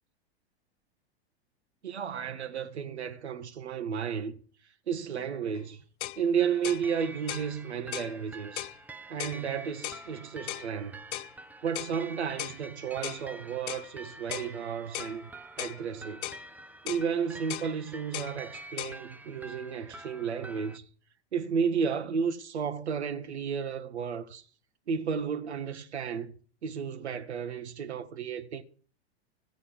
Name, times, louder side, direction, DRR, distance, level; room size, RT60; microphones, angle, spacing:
voice 1, 1.8-4.4 4.9-5.8 6.2-8.7 9.1-11.0 11.6-15.3 15.6-16.3 16.8-20.8 21.3-24.4 24.9-28.6, right 6 dB, 85° right, 1.2 m, -33 dB
sound 1, 5.6-5.7 6.0-6.2 6.6-6.9 7.3-7.5 7.9-8.1 8.6-8.8 9.2-9.4 9.8-10.0 10.5-10.7 11.1-11.3 11.7-12.0 12.4-12.6 13.0-13.2 13.7-13.9 14.3-14.5 14.9-15.2 15.6-15.8 16.2-16.4 16.9-17.1 17.5-17.7 18.1-18.3 18.8-19.0, left 16 dB, 50° left, 0.5 m, -37 dB
sound 2, 6.4-20.8, right 2 dB, 5° right, 0.6 m, -47 dB
14.5 x 5.4 x 8.7 m
hypercardioid pair, 110°, 33 cm